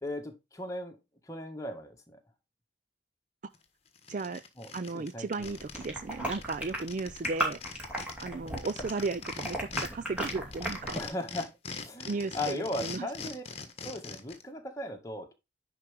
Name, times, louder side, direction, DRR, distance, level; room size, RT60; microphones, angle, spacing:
voice 1, 0.0-1.0 1.2-2.2 4.6-5.6 10.9-13.4 13.8-15.3, left 1 dB, 15° left, 1.7 m, -38 dB
sound 1, 3.5-3.6 4.0-5.9 6.1-6.2 6.4-9.9 10.2-14.4, left 5 dB, 30° left, 1.4 m, -41 dB
voice 2, 4.1-4.4 4.7-7.6 8.2-11.0 12.1-13.1, right 3 dB, 40° right, 0.4 m, -35 dB
sound 2, 5.4-11.1, right 1 dB, 5° right, 2.8 m, -36 dB
10.5 x 4.7 x 3.5 m
head